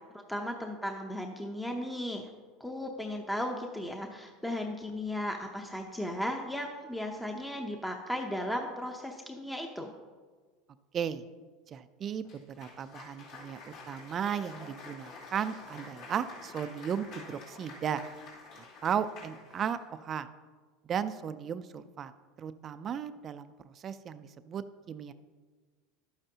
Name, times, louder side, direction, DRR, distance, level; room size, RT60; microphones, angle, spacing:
voice 1, 0.3-2.3 2.6-9.9, left 1 dB, 5° left, 3 dB, 0.7 m, -36 dB
voice 2, 10.9-11.2 11.7-18.0 18.8-20.3 20.9-22.1 22.4-25.1, right 8 dB, 35° right, 12 dB, 0.4 m, -35 dB
Cheering / Applause, 12.2-19.9, left 3 dB, 65° left, 2.7 m, -49 dB
11.5 x 8.8 x 2.8 m, 1.5 s
supercardioid pair, 115°, 0 cm